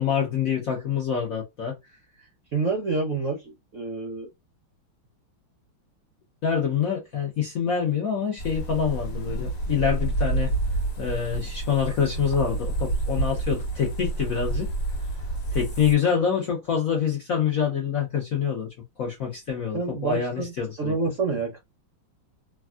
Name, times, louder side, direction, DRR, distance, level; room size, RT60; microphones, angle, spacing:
voice 1, 0.0-1.8 6.4-10.5 11.0-14.7 15.5-18.7 19.0-20.9, left 7 dB, 65° left, 0.8 m, -26 dB
voice 2, 2.5-4.3 19.7-20.5 20.8-21.6, right 4 dB, 60° right, 0.8 m, -28 dB
sound 1, 8.4-15.9, right 2 dB, 35° left, 1.2 m, -29 dB
3.4 x 2.3 x 2.3 m
omnidirectional pair, 2.3 m